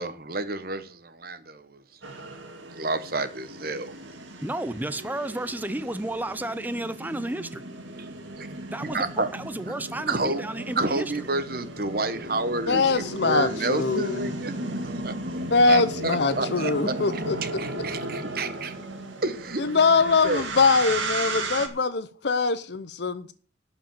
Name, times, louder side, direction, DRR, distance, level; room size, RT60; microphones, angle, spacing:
voice 1, 0.0-1.8 2.7-3.9 8.0-8.5 8.8-9.3 10.1-10.5 10.8-12.8 13.2-14.5 14.8-18.8 19.2-19.7 20.2-20.4, right 2 dB, 50° right, 1.2 m, -30 dB
sound 1, 2.0-21.7, right 2 dB, 85° right, 2.1 m, -35 dB
voice 2, 4.4-7.6 8.7-11.1 23.2-23.3, right 1 dB, 10° right, 0.6 m, -32 dB
voice 3, 12.7-14.2 15.5-17.4 19.6-23.3, left 4 dB, 60° left, 0.7 m, -23 dB
11.5 x 5.2 x 8.7 m
head